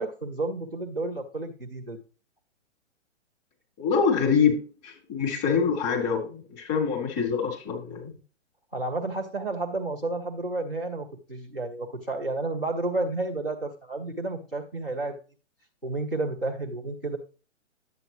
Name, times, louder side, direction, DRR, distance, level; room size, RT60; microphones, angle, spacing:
voice 1, 0.0-2.0 8.7-15.2 15.8-17.2, right 2 dB, ahead, -10 dB, 0.3 m, -31 dB
voice 2, 3.8-8.1, left 6 dB, 35° left, 0 dB, 4.2 m, -25 dB
10.5 x 8.7 x 3.0 m, 0.35 s
figure-of-eight pair, 135°, 36 cm